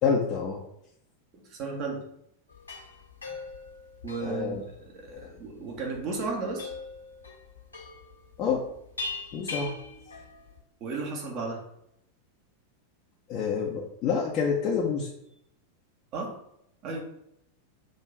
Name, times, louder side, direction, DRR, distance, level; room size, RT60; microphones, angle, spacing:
voice 1, 0.0-0.6 4.2-4.6 5.1-5.3 8.4-8.6 9.3-9.7 13.3-15.1, left 6 dB, 35° left, -3 dB, 1.0 m, -27 dB
voice 2, 1.3-2.1 4.0-6.7 10.8-11.6 16.1-16.4 16.8-17.0, right 3 dB, 40° right, 0 dB, 1.8 m, -34 dB
sound 1, 2.5-10.6, left 4 dB, 80° left, 1.7 m, -41 dB
6.5 x 3.2 x 5.6 m, 0.77 s
figure-of-eight pair, 90°, 0 cm